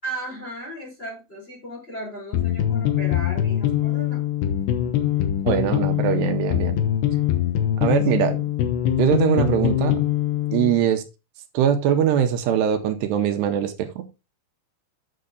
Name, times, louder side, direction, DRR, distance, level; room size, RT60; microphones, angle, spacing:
voice 1, 0.0-4.2 8.1-8.3, right 1 dB, 15° left, -3 dB, 3.8 m, -36 dB
sound 1, 2.3-10.8, left 11 dB, 85° left, 3.3 m, -23 dB
voice 2, 5.5-6.8 7.8-8.4 9.0-10.0 10.5-11.0 11.5-14.0, right 9 dB, 85° right, 7 dB, 3.0 m, -22 dB
8.7 x 6.7 x 4.0 m, 0.27 s
omnidirectional pair, 4.9 m